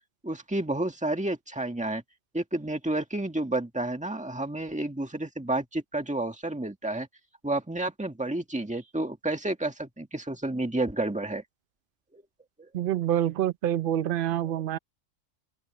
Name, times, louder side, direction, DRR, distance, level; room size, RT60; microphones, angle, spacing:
voice 1, 0.2-2.0 2.3-7.1 7.4-11.4 12.1-12.2, right 2 dB, 5° right, 1.8 m, -30 dB
voice 2, 12.7-14.8, right 11 dB, 55° right, 0.7 m, -27 dB
open air
omnidirectional pair, 1.3 m